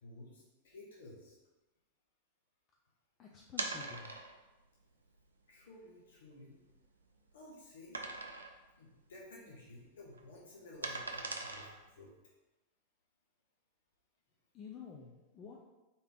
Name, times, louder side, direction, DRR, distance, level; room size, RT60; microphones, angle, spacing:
voice 1, 0.0-1.4 5.5-6.6 7.3-8.0 8.8-12.1, left 2 dB, 60° left, -4 dB, 1.0 m, -54 dB
voice 2, 3.2-4.2 14.5-15.6, left 6 dB, 30° left, -1 dB, 0.5 m, -50 dB
sound 1, 3.5-4.5 5.2-5.3 5.7-5.8 6.3-7.3 7.9-8.7 9.0-9.2 9.5-12.1, right 3 dB, 75° right, 0.4 m, -42 dB
4.2 x 3.4 x 3.8 m, 1.1 s
figure-of-eight pair, 90°, 0 cm